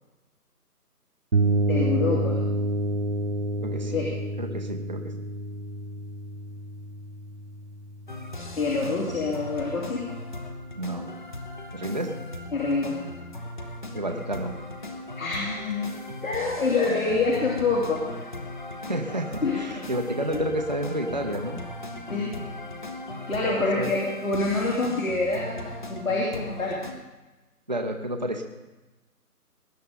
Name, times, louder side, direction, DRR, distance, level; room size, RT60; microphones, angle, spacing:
sound 1, 1.3-9.0, right 1 dB, 45° right, 1.1 m, -29 dB
voice 1, 1.7-2.4 3.9-4.1 8.6-10.1 12.5-13.0 15.2-16.0 16.2-18.2 19.4-19.8 20.3-20.4 22.1-22.4 23.3-26.8, left 3 dB, 60° left, -3 dB, 2.9 m, -26 dB
voice 2, 3.6-4.1 4.4-5.1 10.8-11.1 11.7-12.2 13.9-14.5 18.9-21.6 23.5-23.9 27.7-28.4, right 1 dB, 30° right, 3 dB, 0.7 m, -30 dB
sound 2, 8.1-26.9, left 1 dB, 30° left, 0.9 m, -38 dB
19.5 x 10.5 x 3.9 m, 1.1 s
figure-of-eight pair, 165°, 46 cm